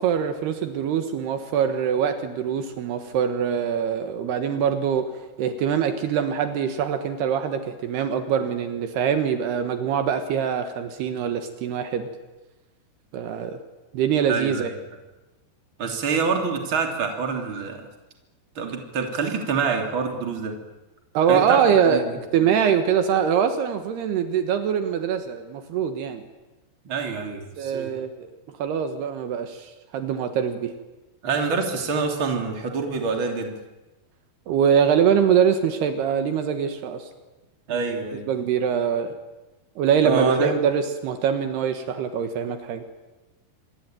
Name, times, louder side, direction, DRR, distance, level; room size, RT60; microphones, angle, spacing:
voice 1, 0.0-5.1 5.4-12.1 13.1-13.6 13.9-14.7 21.2-26.2 27.6-28.3 28.6-30.7 34.5-37.1 37.7-38.0 38.3-39.2 39.8-42.8, right 8 dB, 75° right, 7 dB, 3.4 m, -23 dB
voice 2, 14.3-14.7 15.8-17.8 18.6-20.5 21.3-22.1 26.9-27.9 31.2-33.6 37.7-38.3 40.0-40.6, right 5 dB, 30° right, 3 dB, 3.5 m, -26 dB
26.5 x 22.5 x 9.2 m, 1.1 s
omnidirectional pair, 4.9 m